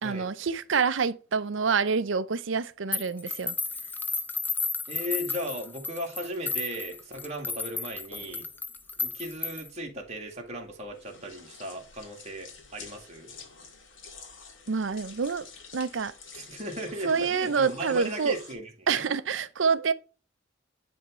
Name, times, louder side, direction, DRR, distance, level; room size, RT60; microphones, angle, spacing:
voice 1, 0.0-3.5 14.7-15.5 15.7-16.1 17.0-18.3 18.9-19.9, right 5 dB, 80° right, 0.6 m, -27 dB
sound 1, 2.9-9.8, left 4 dB, 10° left, 0.5 m, -33 dB
voice 2, 4.9-8.5 9.0-13.3 16.3-19.0, equal, 35° right, 2.0 m, -37 dB
sound 2, 6.2-18.6, left 4 dB, 90° left, 1.8 m, -50 dB
10.5 x 3.6 x 3.0 m
head